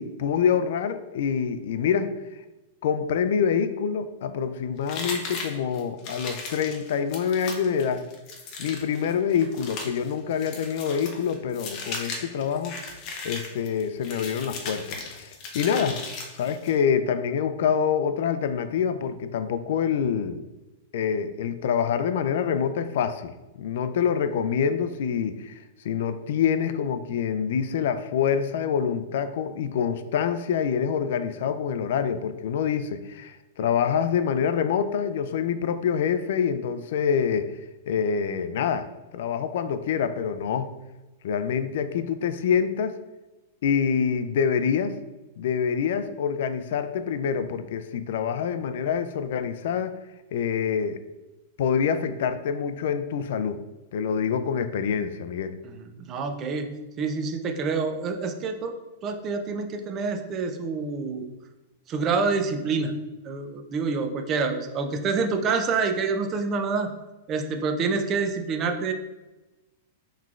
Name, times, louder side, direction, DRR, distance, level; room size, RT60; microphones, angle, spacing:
voice 1, 0.0-2.1 2.8-8.1 8.6-12.8 13.2-16.0 16.4-20.4 20.9-23.3 23.6-37.6 37.9-38.9 39.1-40.7 41.2-43.0 43.6-45.0 45.4-50.0 50.3-51.0 51.6-53.6 53.9-55.6, left 7 dB, 60° left, 11 dB, 0.3 m, -26 dB
sound 1, 4.9-16.8, left 4 dB, 30° left, 0.7 m, -37 dB
voice 2, 55.7-56.7 57.0-58.7 59.0-61.3 61.9-62.9 63.2-66.9 67.3-68.9, right 4 dB, 25° right, 5 dB, 0.4 m, -27 dB
5.7 x 3.1 x 2.4 m, 1.1 s
supercardioid pair, 165°, 0 cm